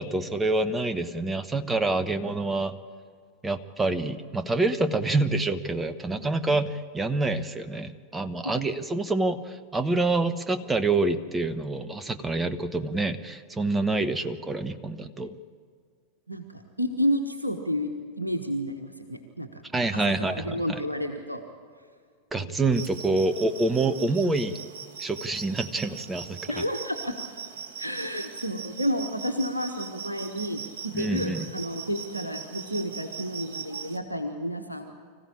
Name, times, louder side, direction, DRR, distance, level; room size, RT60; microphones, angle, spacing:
voice 1, 0.0-2.8 3.4-15.3 19.7-20.8 22.3-24.6 25.0-26.6 30.9-31.5, right 2 dB, 10° right, 11 dB, 1.2 m, -27 dB
voice 2, 16.3-19.6 19.9-21.4 22.4-22.6 26.5-27.1 27.8-34.9, equal, 85° right, 5 dB, 1.3 m, -31 dB
sound 1, 22.7-34.0, right 6 dB, 50° right, 2.5 m, -40 dB
25.5 x 15.0 x 8.7 m, 2.1 s
figure-of-eight pair, 90°, 0 cm